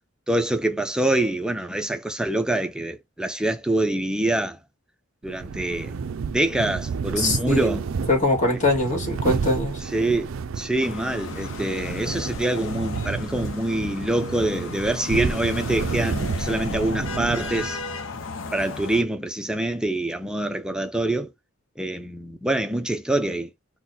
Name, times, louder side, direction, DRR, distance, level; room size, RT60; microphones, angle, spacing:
voice 1, 0.3-4.6 5.2-5.9 6.3-7.9 9.8-10.3 10.6-17.8 18.5-21.3 21.8-23.5, right 1 dB, 5° right, 0.4 m, -25 dB
sound 1, 5.3-18.0, right 5 dB, 75° right, 0.4 m, -31 dB
voice 2, 7.2-7.8 8.1-9.8, left 2 dB, 35° left, 1.7 m, -22 dB
sound 2, 10.8-19.0, left 4 dB, 70° left, 0.7 m, -35 dB
3.9 x 2.1 x 4.1 m
head